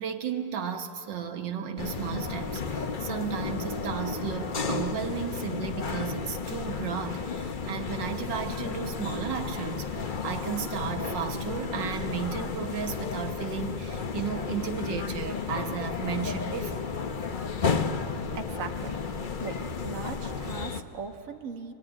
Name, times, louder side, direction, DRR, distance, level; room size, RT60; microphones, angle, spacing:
voice 1, 0.0-16.9, right 8 dB, 75° right, 5 dB, 1.8 m, -34 dB
sound 1, 1.8-20.8, left 5 dB, 45° left, 0.6 m, -33 dB
voice 2, 18.3-19.0 19.4-19.5 19.8-21.7, right 5 dB, 50° right, 3 dB, 1.5 m, -38 dB
25.0 x 20.5 x 9.9 m, 2.9 s
omnidirectional pair, 2.0 m